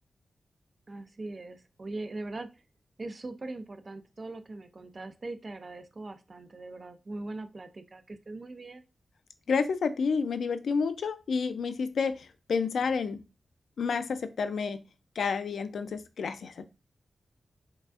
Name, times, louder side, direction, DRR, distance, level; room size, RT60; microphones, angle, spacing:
voice 1, 0.9-2.6 3.0-8.9, right 2 dB, 30° right, 9 dB, 0.3 m, -41 dB
voice 2, 9.5-13.2 13.8-14.8 15.2-16.6, left 5 dB, 90° left, 10 dB, 0.4 m, -30 dB
4.7 x 2.4 x 2.4 m, 0.28 s
wide cardioid pair, 170°, 0 cm